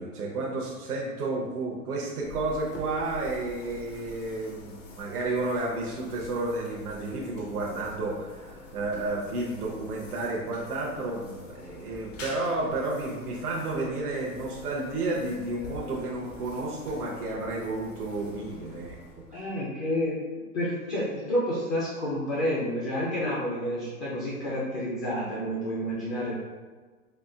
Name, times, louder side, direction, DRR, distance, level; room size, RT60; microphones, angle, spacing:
voice 1, 0.0-19.0 19.3-19.4 26.3-26.4, right 2 dB, 80° right, -2 dB, 0.8 m, -31 dB
sound 1, 2.2-19.6, left 1 dB, 55° left, 0.8 m, -46 dB
voice 2, 19.3-20.2 20.5-26.3, equal, 25° left, -7 dB, 0.4 m, -29 dB
4.2 x 2.4 x 2.3 m, 1.4 s
hypercardioid pair, 125°, 45 cm